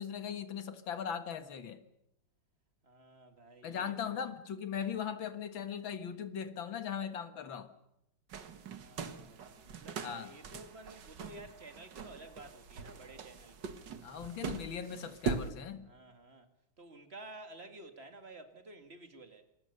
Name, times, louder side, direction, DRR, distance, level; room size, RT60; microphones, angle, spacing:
voice 1, 0.0-1.8 3.6-7.7 10.0-10.3 14.0-15.9, left 8 dB, 75° left, 2.4 m, -39 dB
voice 2, 2.8-4.3 8.7-13.6 15.8-16.5 16.8-19.5, right 2 dB, 30° right, 2.2 m, -52 dB
sound 1, 8.3-15.5, right 5 dB, 60° right, 2.1 m, -42 dB
27.5 x 20.5 x 6.8 m
omnidirectional pair, 2.2 m